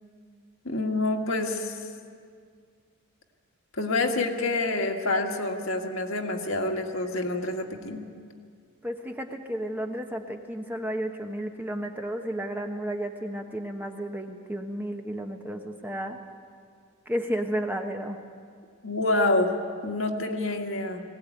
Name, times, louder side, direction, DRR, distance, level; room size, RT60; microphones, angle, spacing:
voice 1, 0.7-1.8 3.7-8.0 18.8-19.5 19.8-21.0, left 2 dB, 65° left, 2 dB, 1.9 m, -27 dB
voice 2, 8.8-16.2 17.1-18.2, right 1 dB, 10° right, 4 dB, 1.1 m, -32 dB
20.5 x 17.5 x 9.2 m, 2.1 s
head